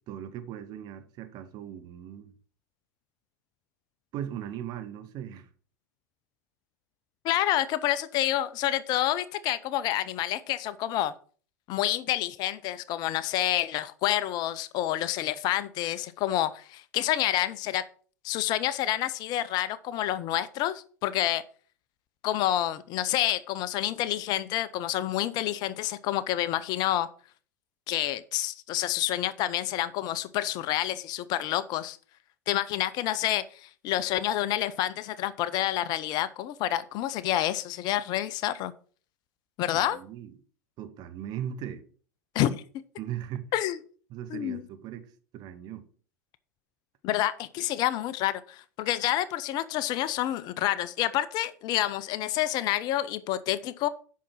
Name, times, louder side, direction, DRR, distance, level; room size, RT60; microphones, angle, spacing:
voice 1, 0.1-2.3 4.1-5.5 39.7-40.3 40.8-41.8 43.0-43.5 44.1-45.9, right 10 dB, 45° right, 1.3 m, -38 dB
voice 2, 7.2-11.1 11.7-17.8 18.2-21.4 22.2-27.1 27.9-32.0 32.5-38.7 39.6-40.0 42.3-42.6 43.5-43.8 44.3-44.6 47.0-53.9, left 13 dB, 45° left, 0.7 m, -28 dB
8.3 x 6.0 x 6.2 m
hypercardioid pair, 85°, 9 cm